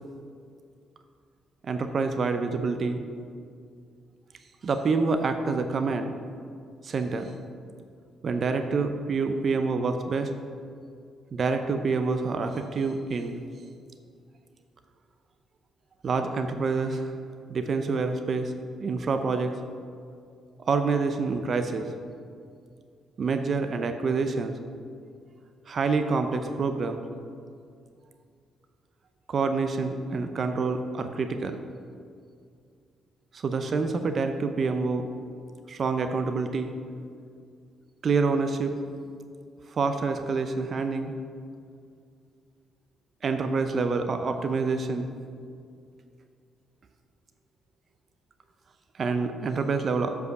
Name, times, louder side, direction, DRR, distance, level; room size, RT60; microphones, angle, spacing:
voice 1, 1.6-3.0 4.6-6.1 6.8-7.3 8.2-10.3 11.3-13.4 16.0-17.1 17.5-18.5 18.8-19.5 20.7-21.9 23.2-24.5 25.7-27.0 29.3-31.6 33.3-35.1 35.7-36.7 38.0-38.8 39.7-41.1 43.2-45.1 49.0-50.2, right 4 dB, 50° right, 7 dB, 0.5 m, -27 dB
8.1 x 4.7 x 6.6 m, 2.3 s
cardioid pair, 90°, 0 cm